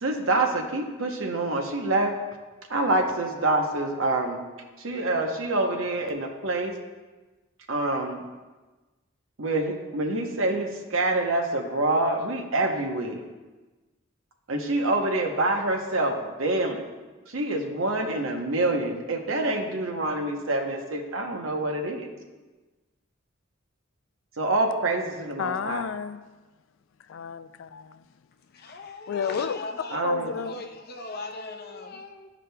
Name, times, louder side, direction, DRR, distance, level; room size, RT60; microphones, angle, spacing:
voice 1, 0.0-2.1 2.7-4.4 4.8-6.7 7.7-8.2 9.4-13.2 14.5-16.8 17.3-22.1 24.4-25.8 29.9-30.3, right 2 dB, 90° right, 0.9 m, -26 dB
voice 2, 25.4-26.2 27.0-28.1 29.1-29.6 30.0-30.6, left 6 dB, 75° left, 0.4 m, -31 dB
voice 3, 28.5-32.3, left 2 dB, 50° left, 0.7 m, -38 dB
12.5 x 4.9 x 2.3 m
head